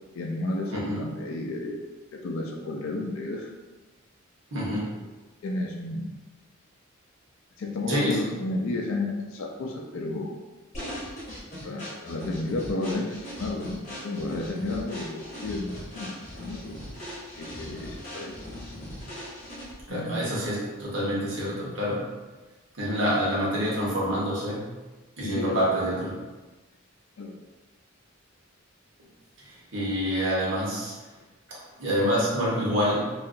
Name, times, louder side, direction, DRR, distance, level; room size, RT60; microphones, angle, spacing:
voice 1, 0.1-1.8 2.1-3.5 5.4-6.1 7.6-10.3 11.6-16.7 17.4-18.4 19.9-20.2 25.2-25.6 27.2-27.4, left 2 dB, 70° left, 1 dB, 0.4 m, -32 dB
voice 2, 4.5-4.9 7.9-8.2 19.9-22.1 22.8-24.7 25.2-26.2 29.4-30.9 31.5-33.1, equal, 65° right, -5 dB, 0.9 m, -27 dB
sound 1, 10.7-19.9, equal, 35° left, 0.8 m, -39 dB
2.7 x 2.4 x 2.5 m, 1.2 s
head